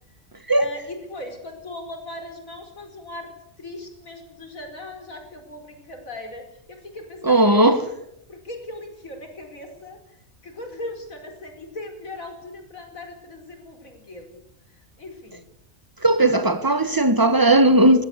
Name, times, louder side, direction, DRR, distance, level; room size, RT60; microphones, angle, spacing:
voice 1, 0.6-3.3 3.6-7.9 8.3-10.2 10.4-14.4 14.7-15.5, left 1 dB, 80° left, 5.2 m, -38 dB
voice 2, 7.2-7.8 16.0-18.0, right 1 dB, 15° right, 1.6 m, -17 dB
21.5 x 20.5 x 8.2 m
omnidirectional pair, 1.4 m